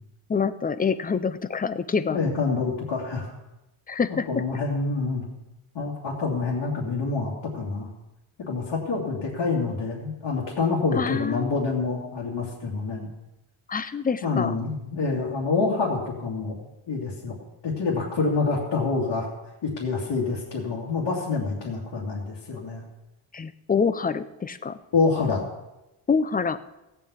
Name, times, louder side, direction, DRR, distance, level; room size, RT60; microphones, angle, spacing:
voice 1, 0.3-2.2 3.9-4.3 10.9-11.6 13.7-14.5 23.3-24.8 26.1-26.6, left 5 dB, 20° left, 14 dB, 0.4 m, -26 dB
voice 2, 2.1-3.3 4.3-5.2 5.7-7.9 8.5-13.1 14.2-16.6 16.9-17.4 17.6-19.3 19.6-22.8 24.9-25.4, left 4 dB, 65° left, -6 dB, 2.9 m, -27 dB
17.0 x 5.7 x 8.4 m, 0.99 s
wide cardioid pair, 175°, 50 cm